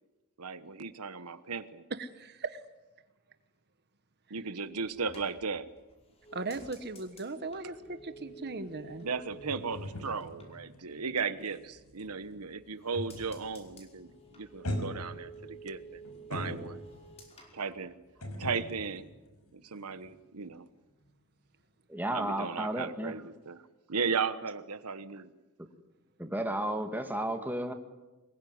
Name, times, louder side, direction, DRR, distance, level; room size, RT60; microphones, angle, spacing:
voice 1, 0.4-1.8 4.3-5.7 9.0-16.0 16.3-16.8 17.5-17.9 18.4-19.1 19.5-20.7 22.1-23.6 23.9-25.3, right 5 dB, 90° right, 12 dB, 1.2 m, -36 dB
voice 2, 1.9-2.6 6.3-9.1, right 3 dB, 50° right, 10 dB, 1.2 m, -38 dB
sound 1, 4.6-11.4 11.8-12.5 12.8-18.5 18.8-19.2, right 3 dB, 30° left, 5.3 m, -52 dB
sound 2, 7.8-13.5 13.8-14.1 14.6-17.1 18.2-20.1 20.4-20.6, left 1 dB, 90° left, 5.5 m, -41 dB
voice 3, 21.9-23.2 26.2-27.7, right 1 dB, 10° right, 5 dB, 2.0 m, -33 dB
25.0 x 21.5 x 9.6 m, 1.1 s
head